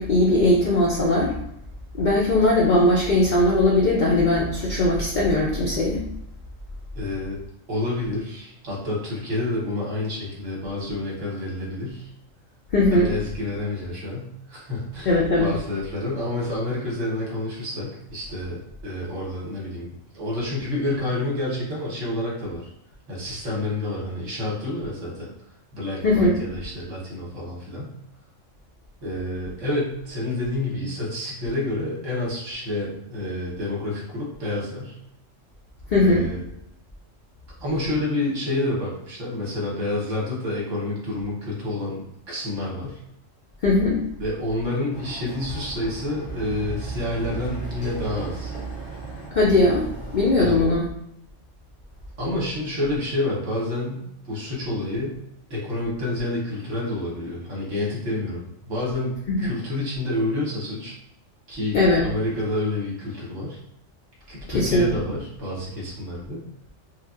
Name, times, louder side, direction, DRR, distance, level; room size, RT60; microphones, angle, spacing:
voice 1, 0.0-1.3 1.9-6.0 12.7-13.1 15.1-15.5 26.0-26.4 35.9-36.3 43.6-44.0 49.3-49.9 50.1-50.9 59.3-59.4 61.7-62.1 64.5-64.9, left 2 dB, 85° left, -3 dB, 0.4 m, -19 dB
voice 2, 7.0-7.4 7.7-12.1 12.8-22.7 23.1-25.3 25.7-27.9 29.0-35.0 35.9-36.4 37.6-43.0 44.2-48.6 50.4-50.6 52.2-55.2 55.5-60.9 61.5-63.6 64.3-66.4, left 2 dB, 70° right, -4 dB, 1.3 m, -29 dB
Chatter / Car passing by / Motorcycle, 44.9-50.3, right 3 dB, 50° left, 1.3 m, -35 dB
3.2 x 2.3 x 2.4 m, 0.79 s
omnidirectional pair, 1.4 m